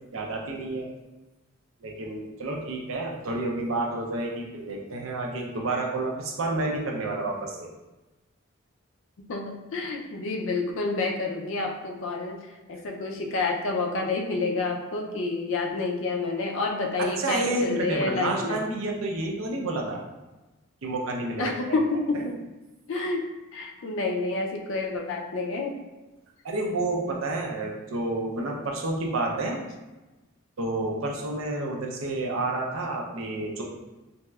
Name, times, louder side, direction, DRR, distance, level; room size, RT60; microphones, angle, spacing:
voice 1, 0.1-0.9 1.8-7.7 17.0-20.0 20.8-21.5 22.1-22.2 26.4-29.6 30.6-33.6, right 2 dB, 70° right, 0 dB, 0.5 m, -30 dB
voice 2, 9.3-12.4 12.7-18.6 21.4-22.4 22.9-23.3 23.5-25.8, left 3 dB, 65° left, 2 dB, 0.4 m, -29 dB
3.0 x 2.8 x 2.3 m, 1.1 s
head